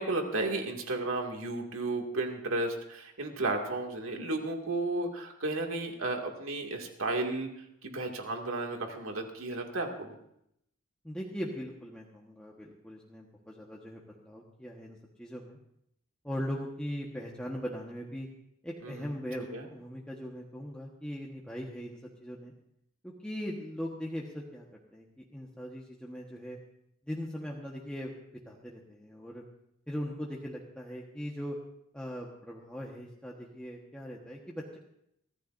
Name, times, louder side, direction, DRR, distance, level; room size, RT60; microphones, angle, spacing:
voice 1, 0.0-7.5 7.8-10.2 18.8-19.1 19.5-19.7, right 2 dB, 80° right, 2 dB, 2.3 m, -33 dB
voice 2, 11.0-15.6 16.2-18.3 18.6-22.5 23.0-24.7 24.9-26.6 27.1-29.4 29.9-31.6 31.9-34.8, equal, 5° left, -3 dB, 1.3 m, -40 dB
24.0 x 15.0 x 2.6 m, 0.76 s
head